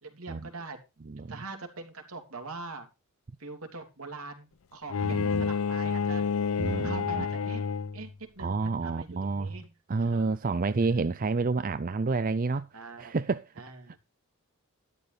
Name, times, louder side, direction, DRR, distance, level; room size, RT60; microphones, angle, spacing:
voice 1, 0.0-0.8 1.1-2.9 3.4-6.2 6.8-9.7 10.0-10.4 12.7-13.2 13.6-14.0, right 3 dB, 80° right, 3.1 m, -43 dB
Bowed string instrument, 4.9-8.1, left 6 dB, 70° left, 0.5 m, -29 dB
voice 2, 5.0-5.5 6.6-7.2 8.4-9.6 9.9-13.6, right 4 dB, 40° right, 0.5 m, -29 dB
12.5 x 11.0 x 3.3 m
head